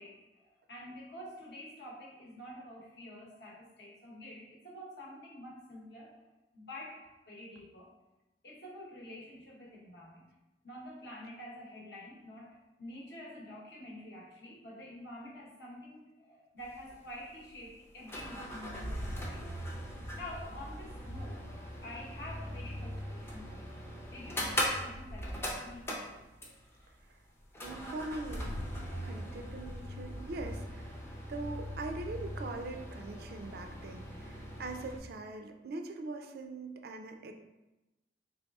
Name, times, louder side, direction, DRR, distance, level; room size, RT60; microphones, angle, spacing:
voice 1, 0.0-6.1 6.5-7.9 8.4-10.3 10.6-19.4 20.1-23.8 24.1-26.0, left 1 dB, 65° left, -4 dB, 0.9 m, -48 dB
sound 1, 16.6-16.7 16.9-17.0 17.9-26.8 27.5-35.0, equal, 15° left, 0.5 m, -40 dB
voice 2, 27.6-28.6 29.0-31.0 31.3-37.3, right 2 dB, 55° right, 6 dB, 0.3 m, -42 dB
4.1 x 3.1 x 2.3 m, 1.0 s
head